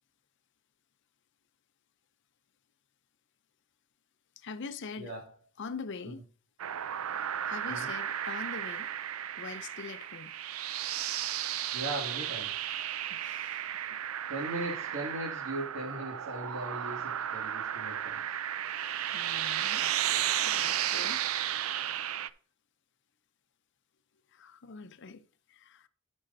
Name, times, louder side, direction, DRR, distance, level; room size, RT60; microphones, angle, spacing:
voice 1, 4.4-5.1 5.6-6.2 7.4-8.9 9.4-10.3 13.1-13.6 13.9-14.0 19.1-19.9 20.4-21.3 24.3-25.9, left 4 dB, 60° left, 0.6 m, -43 dB
sound 1, 6.6-22.3, right 11 dB, 80° right, 0.4 m, -34 dB
voice 2, 11.7-12.6 14.3-18.2, right 1 dB, 65° right, 2.1 m, -39 dB
13.0 x 6.3 x 2.7 m
head